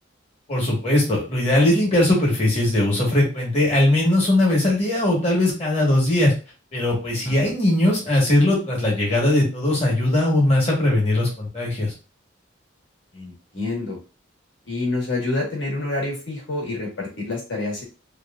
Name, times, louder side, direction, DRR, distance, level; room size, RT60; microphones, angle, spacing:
voice 1, 0.5-6.3 6.7-11.9, left 1 dB, 35° left, -3 dB, 1.3 m, -20 dB
voice 2, 13.1-14.0 14.7-17.8, left 2 dB, 65° left, -2 dB, 1.3 m, -27 dB
3.0 x 2.4 x 2.3 m, 0.32 s
head